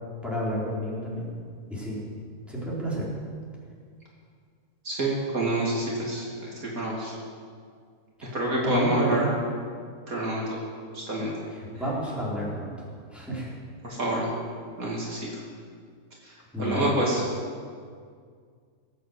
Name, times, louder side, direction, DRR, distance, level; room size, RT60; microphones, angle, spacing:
voice 1, 0.2-1.4 1.7-2.0 2.5-3.1 8.6-9.3 11.5-13.5 16.5-16.9, right 1 dB, ahead, -7 dB, 4.9 m, -31 dB
voice 2, 4.8-6.3 6.7-7.1 8.3-9.3 10.1-10.6 10.9-11.3 13.8-14.3 14.8-15.2 16.6-17.2, right 1 dB, 70° right, -4 dB, 3.3 m, -27 dB
19.5 x 8.6 x 8.3 m, 2.1 s
omnidirectional pair, 1.5 m